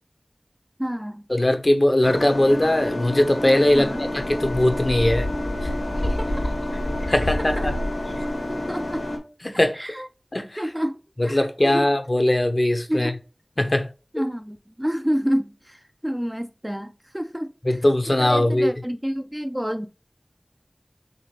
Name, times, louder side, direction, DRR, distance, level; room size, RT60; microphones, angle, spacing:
voice 1, 0.8-1.2 3.7-4.0 6.0-6.5 7.0-7.7 8.1-9.0 9.7-10.1 10.6-11.0 11.2-11.4 11.6-11.8 12.9-13.2 14.1-17.5 18.2-19.9, equal, 15° right, 0.5 m, -29 dB
voice 2, 1.3-3.9 4.3-5.3 5.6-5.7 7.1-7.8 9.4-9.8 10.3-10.6 11.2-13.1 13.6-13.9 17.6-18.7, left 1 dB, 55° left, 0.7 m, -20 dB
sound 1, 2.0-9.2, left 1 dB, 85° left, 1.4 m, -28 dB
6.6 x 2.4 x 3.2 m
wide cardioid pair, 40°, 0 cm